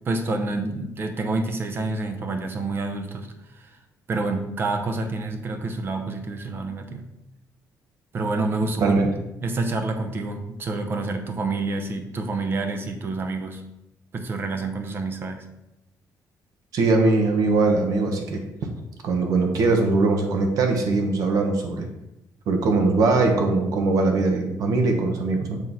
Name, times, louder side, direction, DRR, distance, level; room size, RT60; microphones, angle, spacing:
voice 1, 0.1-3.3 3.5-3.6 4.1-7.0 8.1-8.9 9.4-13.6 14.1-15.4, right 3 dB, 35° right, 6 dB, 0.8 m, -28 dB
voice 2, 16.7-18.4 19.0-21.9 22.5-25.6, right 3 dB, 65° right, 4 dB, 1.2 m, -21 dB
7.5 x 3.2 x 5.7 m, 0.90 s
cardioid pair, 160°, 7 cm